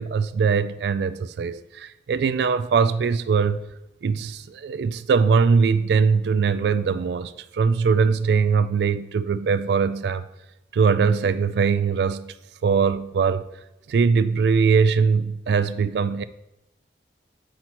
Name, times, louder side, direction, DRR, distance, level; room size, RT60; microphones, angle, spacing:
voice 1, 0.0-3.6 4.0-10.2 10.7-12.3 12.6-13.5 13.9-16.2, right 5 dB, 70° right, 0.3 m, -21 dB
7.5 x 5.7 x 3.0 m
head